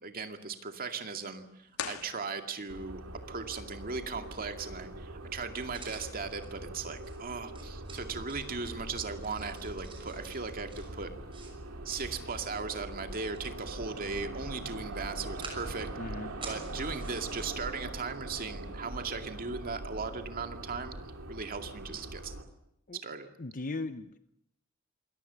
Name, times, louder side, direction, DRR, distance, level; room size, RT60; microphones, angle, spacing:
voice 1, 0.0-3.0 3.3-11.1 11.8-16.1 16.5-21.0 21.3-22.3 22.9-23.3, right 4 dB, 45° right, 6 dB, 2.2 m, -38 dB
sound 1, 1.0-20.0, right 4 dB, 25° right, 6.1 m, -54 dB
sound 2, 1.7-2.9, left 7 dB, 85° left, 1.8 m, -41 dB
sound 3, 2.7-22.4, right 1 dB, 75° right, 2.9 m, -42 dB
voice 2, 16.0-16.3 22.9-23.0 23.4-24.2, left 2 dB, 40° left, 10 dB, 0.9 m, -37 dB
27.0 x 22.0 x 7.0 m, 0.79 s
head